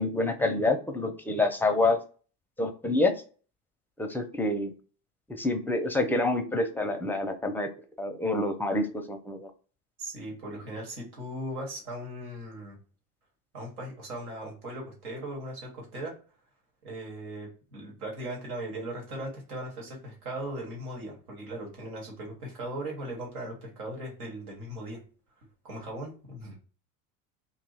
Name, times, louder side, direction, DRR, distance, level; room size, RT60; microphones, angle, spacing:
voice 1, 0.0-2.0 2.6-3.1 4.0-4.7 5.3-7.7 8.0-9.5, left 2 dB, 5° left, 5 dB, 0.5 m, -27 dB
voice 2, 10.0-12.8 13.5-16.1 16.8-25.0 25.6-26.6, right 1 dB, 90° right, -1 dB, 1.4 m, -38 dB
2.7 x 2.3 x 4.0 m, 0.39 s
hypercardioid pair, 80°, 44 cm